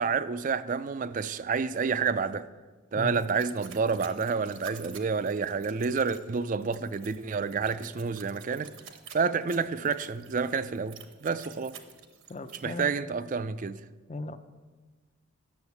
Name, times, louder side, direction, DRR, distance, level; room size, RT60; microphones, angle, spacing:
voice 1, 0.0-2.5 2.9-8.7 9.1-11.8 12.6-13.8, right 5 dB, 40° right, 0.4 m, -29 dB
sound 1, 3.1-12.6, right 8 dB, 70° right, 1.0 m, -50 dB
voice 2, 12.3-13.0 14.1-14.4, left 2 dB, 30° left, 0.5 m, -37 dB
9.7 x 7.1 x 7.1 m
head